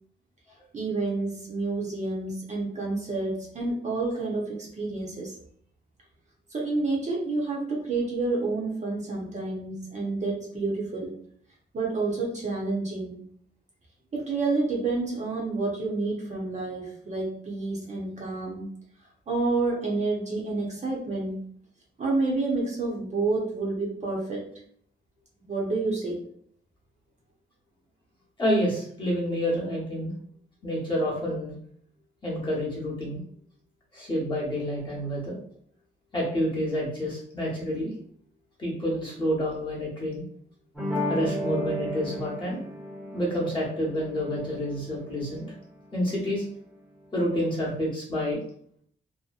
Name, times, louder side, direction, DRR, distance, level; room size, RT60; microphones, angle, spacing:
voice 1, 0.7-5.3 6.5-11.1 11.7-13.2 14.1-18.6 19.3-21.4 22.0-24.4 25.4-26.2, right 3 dB, 40° right, -3 dB, 0.7 m, -29 dB
voice 2, 28.4-30.1 30.6-31.5 32.2-33.2 33.9-35.3 36.1-37.9 38.6-40.2 41.1-42.6 43.1-45.4 45.9-46.5 47.1-48.4, equal, 25° left, -6 dB, 0.9 m, -28 dB
sound 1, 40.7-45.8, equal, ahead, 0.7 m, -34 dB
2.7 x 2.1 x 2.4 m, 0.64 s
wide cardioid pair, 165°, 19 cm